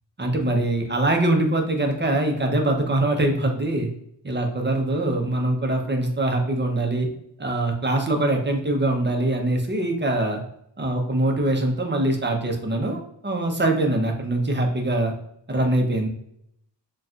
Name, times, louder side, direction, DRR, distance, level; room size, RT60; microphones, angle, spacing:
voice 1, 0.2-3.9 4.2-7.1 7.4-10.4 10.8-15.1 15.5-16.1, right 1 dB, 25° right, 3 dB, 0.6 m, -23 dB
4.0 x 2.3 x 2.4 m, 0.73 s
wide cardioid pair, 65°, 43 cm